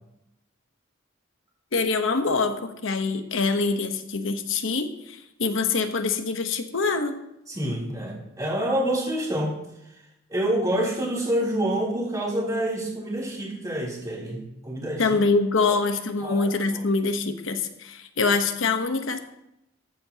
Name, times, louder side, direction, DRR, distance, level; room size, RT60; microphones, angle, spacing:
voice 1, 1.7-7.2 15.0-19.2, left 4 dB, 75° left, 7 dB, 1.1 m, -25 dB
voice 2, 7.5-9.6 10.3-15.0 15.6-15.7 16.2-16.5, right 1 dB, 20° right, -4 dB, 3.3 m, -27 dB
14.5 x 12.0 x 2.9 m, 0.86 s
head